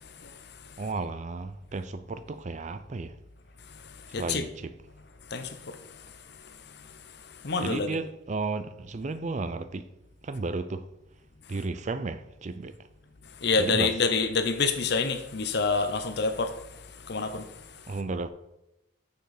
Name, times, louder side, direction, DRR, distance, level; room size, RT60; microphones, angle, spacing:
voice 1, 0.8-3.1 4.2-4.7 7.6-9.9 10.2-10.9 11.5-12.8 13.6-13.9 17.9-18.3, right 3 dB, 35° right, 0.4 m, -33 dB
voice 2, 4.1-4.4 5.3-5.5 7.4-8.0 13.4-16.5 17.1-17.4, left 4 dB, 55° left, 0.8 m, -26 dB
6.9 x 6.5 x 4.9 m
head